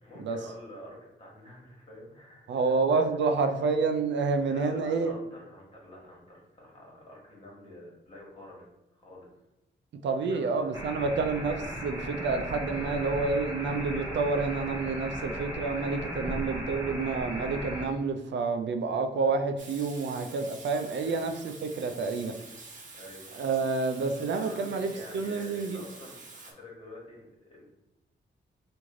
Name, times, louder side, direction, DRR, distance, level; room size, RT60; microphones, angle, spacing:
voice 1, 0.0-2.7 3.4-3.6 4.4-9.3 10.2-11.1 12.5-13.1 21.0-21.3 22.9-23.3 24.4-27.7, left 1 dB, 30° left, -4 dB, 1.5 m, -48 dB
voice 2, 2.5-5.1 10.0-22.3 23.3-25.8, right 4 dB, 75° right, 6 dB, 0.4 m, -29 dB
sound 1, 10.7-17.9, equal, 15° right, 1.3 m, -36 dB
Water tap faucet / Sink (filling or washing), 19.6-26.5, right 3 dB, 45° right, 0.7 m, -48 dB
3.1 x 2.5 x 3.6 m, 0.95 s
wide cardioid pair, 110°, 19 cm